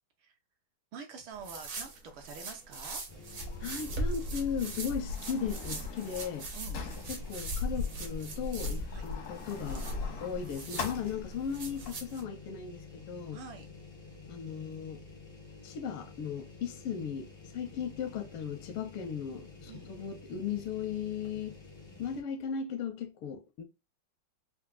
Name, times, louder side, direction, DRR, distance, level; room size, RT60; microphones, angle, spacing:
voice 1, 0.9-3.0 6.5-6.8 8.9-9.1 13.3-13.7 19.7-19.9, right 5 dB, 75° right, 1.4 m, -46 dB
sound 1, 1.3-12.2, right 3 dB, 55° right, 1.0 m, -42 dB
sound 2, 3.1-5.2 5.7-5.8 6.9-22.2, left 3 dB, 40° left, 0.3 m, -50 dB
Sliding door, 3.3-11.9, left 3 dB, 65° left, 0.8 m, -39 dB
voice 2, 3.6-6.5 7.1-9.9 10.2-13.4 14.3-15.0 15.6-21.5 22.0-23.6, left 7 dB, 85° left, 1.5 m, -37 dB
4.5 x 2.1 x 2.3 m
omnidirectional pair, 2.4 m